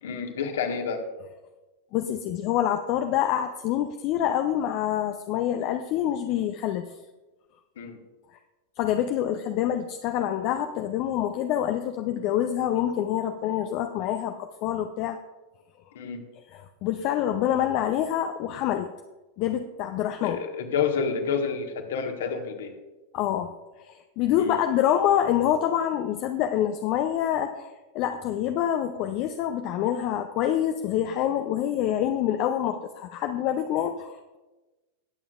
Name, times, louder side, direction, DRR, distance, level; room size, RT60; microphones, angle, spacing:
voice 1, 0.0-1.0 7.8-8.0 15.9-16.2 20.2-22.7 24.4-24.6, left 6 dB, 60° left, 4 dB, 1.5 m, -29 dB
voice 2, 1.9-6.9 8.8-15.2 16.5-18.9 19.4-20.4 23.1-23.5 23.8-27.7 27.9-34.4, left 10 dB, 40° left, 7 dB, 0.6 m, -26 dB
20.0 x 8.8 x 2.5 m, 1.1 s
figure-of-eight pair, 90°, 0 cm